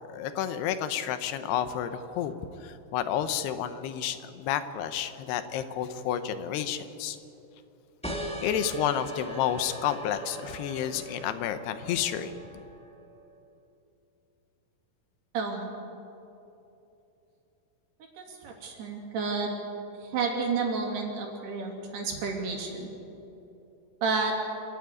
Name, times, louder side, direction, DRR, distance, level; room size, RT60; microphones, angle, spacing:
voice 1, 0.1-2.3 2.6-7.2 8.4-12.3, left 9 dB, 85° left, 10 dB, 3.1 m, -30 dB
sound 1, 8.0-13.2, right 1 dB, 5° left, 1.2 m, -40 dB
voice 2, 15.3-15.7 18.2-19.6 20.1-22.9 24.0-24.3, right 4 dB, 75° right, 0 dB, 4.9 m, -30 dB
26.0 x 13.0 x 9.8 m, 2.9 s
omnidirectional pair, 4.6 m